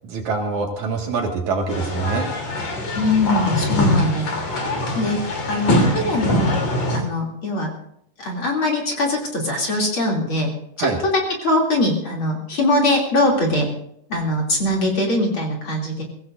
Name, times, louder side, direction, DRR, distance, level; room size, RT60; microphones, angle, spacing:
voice 1, 0.0-2.3 10.8-11.0, right 4 dB, 65° right, 1 dB, 3.1 m, -24 dB
sound 1, 1.7-7.0, left 1 dB, 55° left, 4.4 m, -22 dB
voice 2, 2.9-5.2 5.5-6.6 6.9-7.7 8.2-10.5 10.8-13.7 14.1-16.0, left 1 dB, 40° left, -1 dB, 3.4 m, -22 dB
22.5 x 17.0 x 2.6 m, 0.72 s
omnidirectional pair, 3.8 m